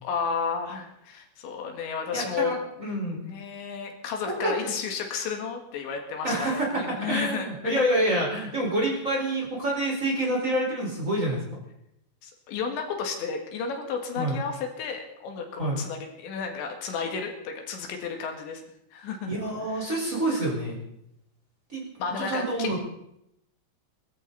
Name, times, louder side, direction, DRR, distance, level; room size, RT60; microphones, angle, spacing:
voice 1, 0.0-2.6 3.2-7.8 12.2-18.6 18.9-19.3 19.7-19.8 22.0-22.8, left 5 dB, 80° left, 3 dB, 4.2 m, -32 dB
voice 2, 2.1-3.2 4.2-4.7 6.2-11.6 14.2-14.4 15.6-15.8 19.3-20.8 21.7-21.8 22.2-22.8, right 1 dB, 15° right, -3 dB, 4.7 m, -27 dB
22.5 x 14.0 x 4.1 m, 0.78 s
omnidirectional pair, 5.2 m